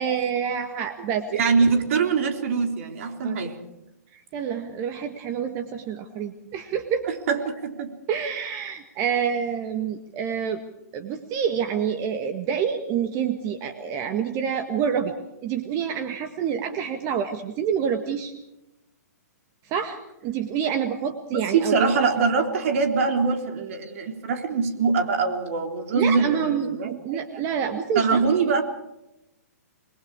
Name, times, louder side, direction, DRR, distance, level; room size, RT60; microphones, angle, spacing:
voice 1, 0.0-1.3 3.2-3.4 4.1-7.1 8.1-10.6 10.9-15.1 15.4-18.3 19.7-22.1 25.9-28.4, right 7 dB, 35° right, 7 dB, 1.8 m, -27 dB
voice 2, 1.3-3.6 7.3-8.0 21.3-27.2 28.0-28.6, right 5 dB, 55° right, 5 dB, 3.7 m, -23 dB
27.5 x 21.5 x 4.9 m, 0.89 s
hypercardioid pair, 125°, 9 cm